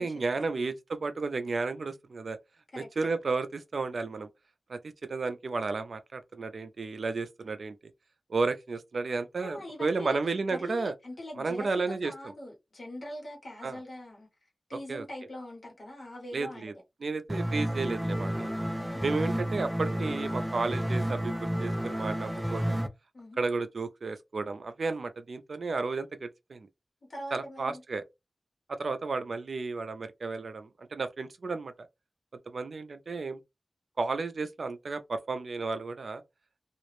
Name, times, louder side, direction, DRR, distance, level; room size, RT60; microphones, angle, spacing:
voice 1, 0.0-2.4 2.8-4.3 4.7-4.8 5.1-7.8 8.3-10.9 11.4-12.3 13.6-13.8 14.9-15.1 16.3-16.7 17.0-18.5 19.0-21.3 21.6-22.8 23.4-26.7 27.3-28.0 28.7-31.9 32.5-33.4 34.0-36.2, right 3 dB, 85° right, 0.4 m, -33 dB
voice 2, 9.4-10.2 10.5-14.3 14.7-16.7 18.8-19.0 23.1-23.4 27.1-27.8, left 1 dB, 70° left, 1.1 m, -42 dB
sound 1, 17.3-22.9, equal, 5° right, 0.3 m, -31 dB
2.4 x 2.0 x 3.0 m
wide cardioid pair, 80°, 0 cm